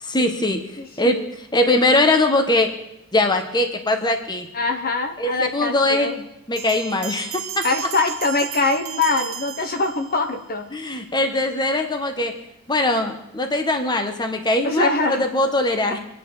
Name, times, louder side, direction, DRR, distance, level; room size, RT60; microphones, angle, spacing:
voice 1, 0.0-2.8 3.1-4.5 5.2-6.2 6.5-7.7 10.7-12.4 12.7-16.0, left 2 dB, 20° left, 5 dB, 1.3 m, -21 dB
voice 2, 0.8-1.3 4.5-6.2 7.6-10.6 14.6-15.2, left 3 dB, 45° left, 5 dB, 1.2 m, -23 dB
Bell, 6.6-10.3, right 9 dB, 85° right, 1.6 m, -34 dB
25.5 x 10.0 x 4.0 m, 0.83 s
head